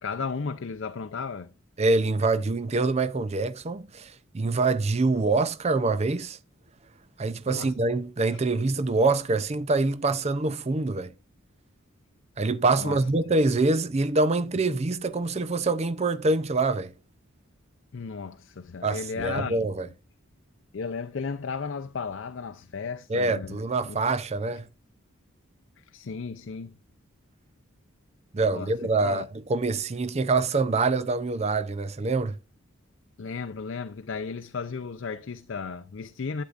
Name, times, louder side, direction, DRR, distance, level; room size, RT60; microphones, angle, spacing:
voice 1, 0.0-1.5 7.5-7.7 8.3-8.4 12.8-13.1 17.9-19.7 20.7-23.6 23.9-24.0 25.8-26.8 28.4-29.3 33.2-36.4, left 5 dB, 60° left, 0.5 m, -34 dB
voice 2, 1.8-6.4 7.2-11.1 12.4-16.9 18.8-19.9 23.1-24.7 28.3-32.3, right 3 dB, 30° right, 0.5 m, -25 dB
11.5 x 8.3 x 2.5 m
head